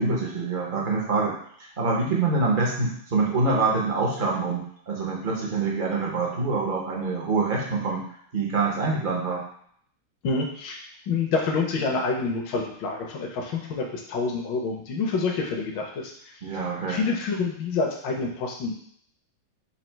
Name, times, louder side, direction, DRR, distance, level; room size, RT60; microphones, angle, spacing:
voice 1, 0.0-8.0 8.3-9.4 16.4-17.0, right 3 dB, 65° right, -3 dB, 0.5 m, -25 dB
voice 2, 10.2-16.6 16.9-18.8, left 4 dB, 75° left, 0 dB, 1.4 m, -28 dB
4.2 x 2.7 x 4.4 m, 0.63 s
omnidirectional pair, 2.2 m